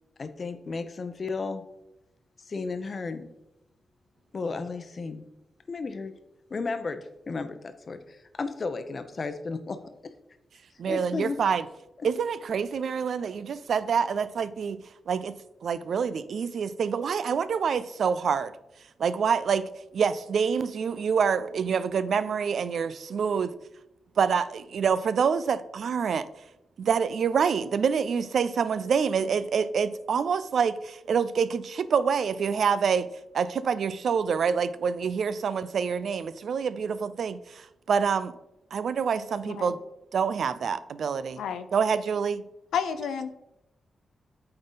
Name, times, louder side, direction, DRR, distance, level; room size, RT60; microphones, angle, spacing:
voice 1, 0.2-1.6 2.4-3.3 4.3-5.2 5.7-6.1 6.5-9.8 10.9-11.4 12.0-12.1, left 4 dB, 50° left, 9 dB, 0.8 m, -34 dB
voice 2, 10.8-11.6 12.0-14.8 15.1-15.3 15.6-18.5 19.0-23.5 24.2-26.3 26.8-33.1 33.3-38.3 38.7-39.8 40.1-41.4 41.7-42.4, right 6 dB, 70° right, 15 dB, 0.4 m, -26 dB
voice 3, 41.4-41.7 42.7-43.3, left 7 dB, 90° left, 10 dB, 0.5 m, -31 dB
8.6 x 3.8 x 4.0 m, 0.89 s
cardioid pair, 55°, 0 cm